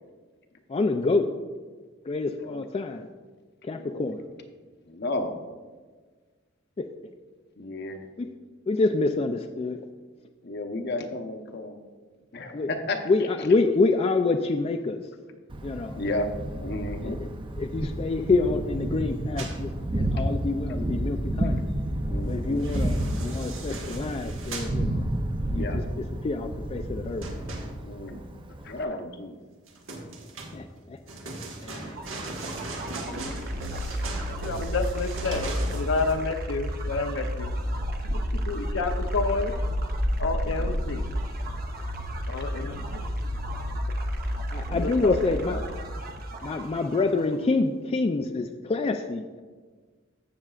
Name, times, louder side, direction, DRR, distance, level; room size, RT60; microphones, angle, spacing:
voice 1, 0.7-1.3 2.1-3.1 3.6-4.2 6.8-6.9 8.2-8.3 8.7-9.8 12.5-12.7 13.1-15.1 15.6-16.0 17.0-21.6 22.2-25.0 25.5-27.3 30.5-31.0 31.6-32.2 33.1-33.3 40.6-40.7 41.8-41.9 44.5-45.7 46.4-49.4, left 3 dB, 30° left, 6 dB, 0.3 m, -27 dB
voice 2, 3.7-4.1 4.9-5.3 7.6-8.1 10.4-11.8 12.3-13.0 16.0-16.3 16.6-17.2 22.1-22.6 25.5-25.8 27.8-28.3 28.6-29.4 33.1-33.5 42.6-42.8 44.9-45.0, left 2 dB, 55° left, 5 dB, 0.9 m, -33 dB
Thunder, 15.5-28.8, right 1 dB, 25° right, 0.5 m, -31 dB
sound 1, 19.4-19.6 22.4-24.8 27.2-28.1 29.7-36.1, right 2 dB, 90° right, 1.4 m, -39 dB
sound 2, 31.7-47.4, equal, 50° right, 0.8 m, -31 dB
voice 3, 34.3-37.5 38.3-39.5 40.2-41.0 42.3-43.0 44.7-45.1 45.5-45.6, left 3 dB, 80° left, 6 dB, 0.6 m, -30 dB
15.0 x 6.6 x 2.4 m, 1.4 s
head